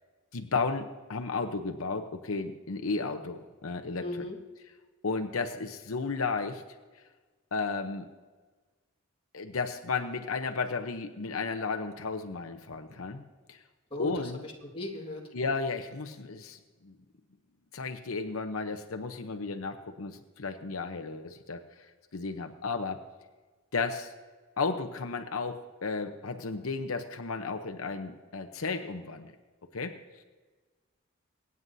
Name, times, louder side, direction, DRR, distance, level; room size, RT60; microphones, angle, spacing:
voice 1, 0.3-4.3 5.0-6.6 7.5-8.1 9.3-13.2 13.5-13.6 14.0-14.4 15.3-16.9 17.7-21.8 22.1-23.0 23.7-24.1 24.6-29.3 29.7-30.0, left 4 dB, 80° left, 5 dB, 0.8 m, -33 dB
voice 2, 4.0-4.4 13.9-15.2, left 2 dB, 25° left, -1 dB, 1.9 m, -38 dB
24.0 x 9.6 x 2.7 m, 1.3 s
head